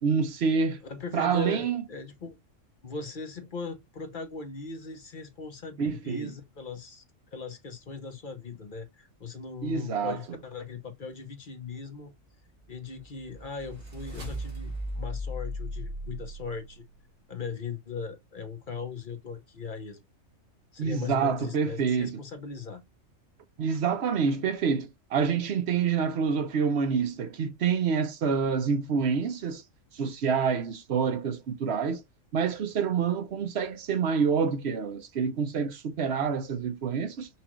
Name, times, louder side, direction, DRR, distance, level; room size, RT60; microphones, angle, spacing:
voice 1, 0.0-0.8 1.1-1.8 5.8-6.3 9.6-10.2 20.8-22.2 23.6-29.6 29.9-32.0 32.3-37.3, right 6 dB, 60° right, 0.9 m, -27 dB
voice 2, 0.8-2.4 2.8-7.0 7.3-12.1 12.7-16.9 17.3-20.0 20.7-22.8, left 5 dB, 45° left, 0.9 m, -39 dB
sound 1, 12.7-16.9, equal, 80° right, 2.3 m, -37 dB
5.8 x 2.4 x 3.0 m
omnidirectional pair, 1.4 m